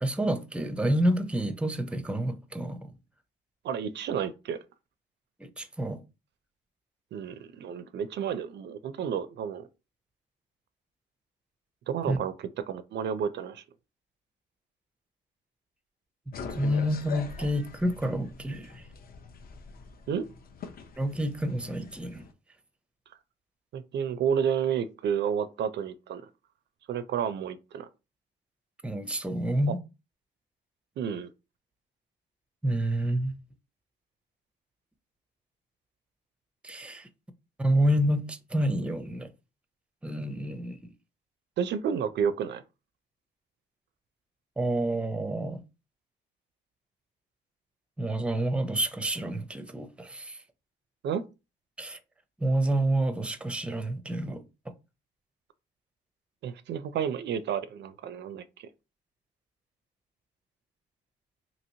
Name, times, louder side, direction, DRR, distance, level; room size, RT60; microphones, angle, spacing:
voice 1, 0.0-2.9 5.4-6.0 12.1-12.2 16.5-18.9 21.0-22.3 28.8-29.8 32.6-33.4 36.6-37.1 37.6-39.3 40.0-40.9 44.6-45.6 48.0-50.4 51.8-52.0 52.4-54.4, right 1 dB, 5° right, 0.5 m, -28 dB
voice 2, 3.6-4.6 7.1-9.7 11.9-13.6 20.1-20.3 23.7-26.2 26.9-27.9 31.0-31.3 41.6-42.6 51.0-51.2 56.4-58.7, right 8 dB, 60° right, 0.4 m, -31 dB
sound 1, 16.3-22.3, left 5 dB, 50° left, 0.6 m, -43 dB
2.9 x 2.8 x 2.7 m
cardioid pair, 90°, 20 cm